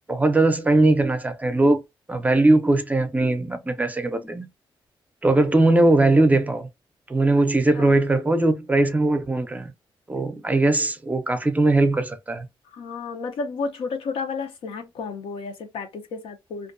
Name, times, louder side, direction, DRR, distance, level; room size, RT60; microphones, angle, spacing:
voice 1, 0.1-1.8 2.1-4.5 5.2-6.7 7.1-9.7 10.1-12.5, right 2 dB, 15° right, 0.5 m, -20 dB
voice 2, 12.7-16.7, left 4 dB, 85° left, 0.6 m, -32 dB
2.4 x 2.2 x 2.5 m
cardioid pair, 95°, 9 cm